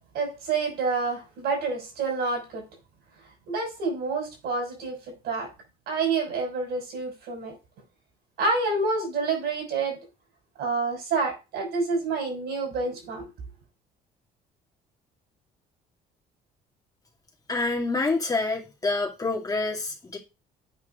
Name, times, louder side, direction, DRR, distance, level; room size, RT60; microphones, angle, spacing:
voice 1, 0.1-2.6 3.5-5.5 5.9-7.5 8.4-10.0 10.6-13.3, right 4 dB, 75° right, 5.7 m, -28 dB
voice 2, 17.5-20.2, left 3 dB, 20° left, 2.3 m, -27 dB
8.6 x 4.7 x 5.0 m
cardioid pair, 110°, 17 cm